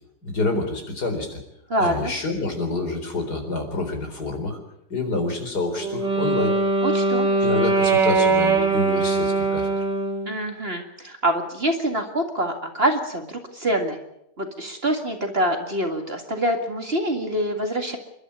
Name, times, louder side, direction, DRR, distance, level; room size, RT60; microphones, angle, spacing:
voice 1, 0.2-1.4 1.8-4.6 4.9-6.6 7.4-9.8, left 3 dB, 65° left, 5 dB, 4.7 m, -27 dB
voice 2, 1.7-2.1 6.8-7.3 10.3-14.0 14.4-18.0, right 1 dB, 35° right, 4 dB, 2.2 m, -25 dB
Wind instrument woodwind instrument, 5.8-10.3, right 3 dB, 80° right, 4.0 m, -21 dB
28.0 x 12.5 x 8.5 m, 0.81 s
omnidirectional pair, 1.9 m